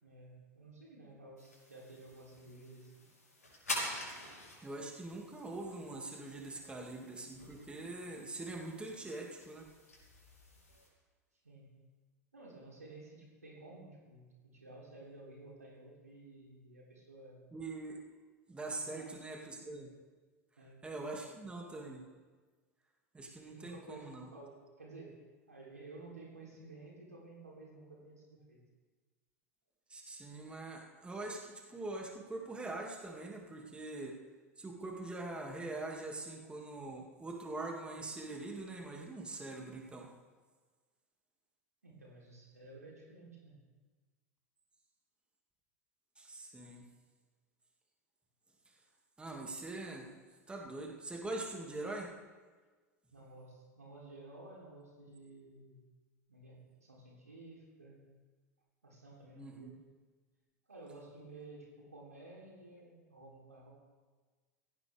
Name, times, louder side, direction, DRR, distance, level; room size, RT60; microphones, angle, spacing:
voice 1, 0.0-2.9 6.5-6.9 11.4-11.8 12.3-17.5 18.7-19.1 20.6-21.2 23.4-25.2 25.5-28.6 41.8-43.7 53.1-55.8 56.3-58.1 58.8-59.8 60.7-63.7, right 2 dB, 80° right, -3 dB, 3.7 m, -53 dB
sound 1, 1.4-10.9, left 1 dB, 80° left, 4.6 m, -47 dB
voice 2, 4.6-9.7 17.5-18.0 18.5-19.9 20.8-22.0 23.1-24.3 29.9-34.1 34.6-40.1 46.2-46.8 49.2-50.1 50.5-52.1 59.3-59.8, right 2 dB, 10° right, 0 dB, 2.5 m, -43 dB
17.5 x 15.5 x 3.6 m, 1.4 s
figure-of-eight pair, 80°, 8 cm